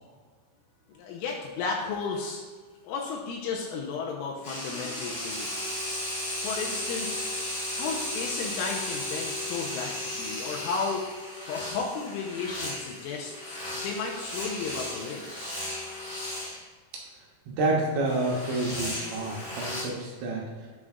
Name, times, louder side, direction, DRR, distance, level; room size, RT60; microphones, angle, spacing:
voice 1, 0.9-2.4 2.8-5.8 6.4-7.2 7.7-11.0 11.5-15.2, left 5 dB, 85° left, -1 dB, 3.2 m, -34 dB
sound 1, 4.4-16.6 18.0-19.8, left 1 dB, 65° left, 0.6 m, -35 dB
voice 2, 17.5-20.4, right 2 dB, 70° right, -3 dB, 3.0 m, -28 dB
9.6 x 7.7 x 2.4 m, 1.5 s
omnidirectional pair, 5.9 m